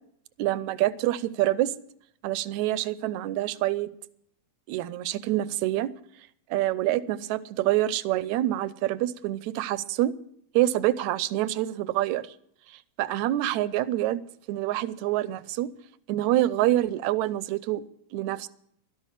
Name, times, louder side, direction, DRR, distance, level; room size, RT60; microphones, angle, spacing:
voice 1, 0.4-1.7 2.2-3.9 4.7-5.9 6.5-10.1 10.6-12.2 13.0-14.2 14.5-15.7 16.1-17.8 18.1-18.5, right 14 dB, 80° right, 17 dB, 2.0 m, -26 dB
12.5 x 11.5 x 7.4 m, 0.68 s
omnidirectional pair, 3.3 m